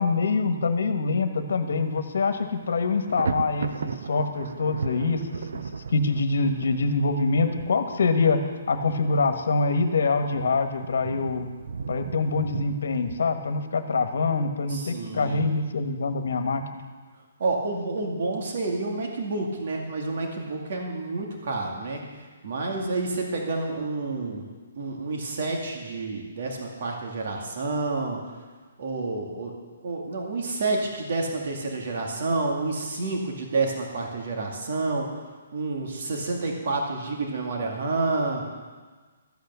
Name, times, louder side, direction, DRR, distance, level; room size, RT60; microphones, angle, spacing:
voice 1, 0.0-11.5 11.9-16.8, left 3 dB, 75° left, 7 dB, 1.4 m, -25 dB
Thunder, 1.7-2.0 2.3-13.1, right 5 dB, 70° right, 0.6 m, -37 dB
voice 2, 14.7-15.4 17.4-22.0 22.4-24.4 24.8-28.2 28.8-29.5 29.8-38.4, right 3 dB, 50° right, 0 dB, 2.3 m, -29 dB
13.5 x 8.5 x 7.0 m, 1.4 s
hypercardioid pair, 170°, 0 cm